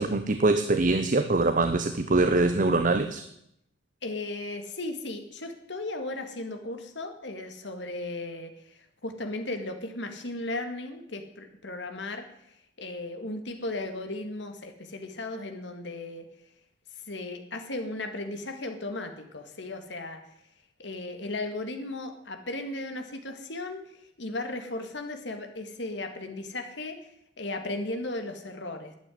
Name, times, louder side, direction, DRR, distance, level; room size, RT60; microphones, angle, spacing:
voice 1, 0.0-3.3, right 2 dB, 45° right, 9 dB, 0.8 m, -23 dB
voice 2, 4.0-12.2 12.8-16.2 17.1-20.2 20.8-23.8 24.2-27.1 27.4-28.9, left 2 dB, 65° left, 6 dB, 2.1 m, -36 dB
12.0 x 9.1 x 10.0 m, 0.76 s
head